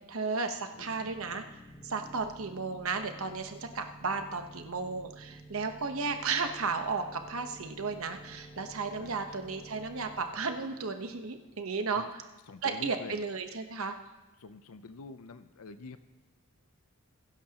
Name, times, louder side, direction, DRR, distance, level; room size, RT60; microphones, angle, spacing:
voice 1, 0.1-1.4 1.8-12.2 12.6-13.9, right 4 dB, 65° right, 7 dB, 1.0 m, -34 dB
sound 1, 0.5-12.1, right 2 dB, 20° left, 1.1 m, -52 dB
voice 2, 0.8-1.1 9.0-9.6 11.9-12.1 12.5-13.2 14.4-16.0, left 3 dB, 80° left, 10 dB, 0.6 m, -47 dB
21.5 x 11.0 x 2.9 m, 1.1 s
head